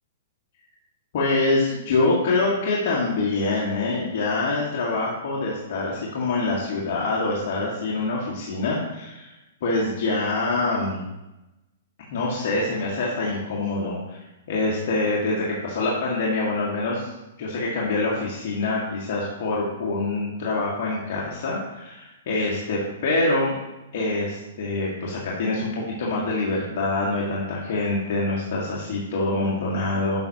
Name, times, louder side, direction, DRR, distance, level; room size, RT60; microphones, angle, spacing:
voice 1, 1.1-9.3 9.6-11.0 12.1-14.2 14.5-17.1 17.4-23.6 23.9-30.2, left 2 dB, 55° left, -4 dB, 1.9 m, -25 dB
12.5 x 5.8 x 2.9 m, 0.99 s
hypercardioid pair, 135°, 0 cm